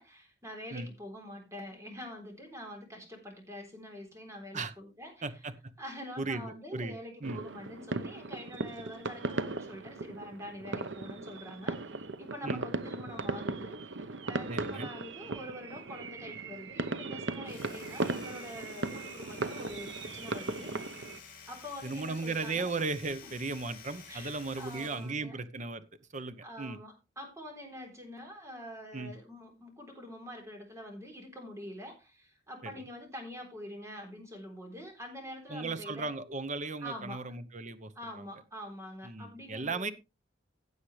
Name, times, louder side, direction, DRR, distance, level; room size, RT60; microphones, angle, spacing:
voice 1, 0.0-5.2 5.8-20.7 21.5-22.7 23.2-23.3 24.1-25.4 26.4-36.1 36.8-37.3 38.0-39.9, left 1 dB, 15° right, 2 dB, 3.8 m, -45 dB
voice 2, 5.2-5.5 6.2-7.4 12.4-12.6 14.5-14.9 21.8-25.8 26.1-26.8 28.9-29.1 32.6-32.7 35.5-38.2 39.0-39.9, right 3 dB, 40° right, 12 dB, 0.9 m, -36 dB
sound 1, 7.2-21.2, right 3 dB, 75° right, 0.9 m, -37 dB
Domestic sounds home sounds, 17.3-25.2, left 6 dB, 50° left, 4.3 m, -51 dB
16.0 x 7.3 x 3.3 m, 0.26 s
head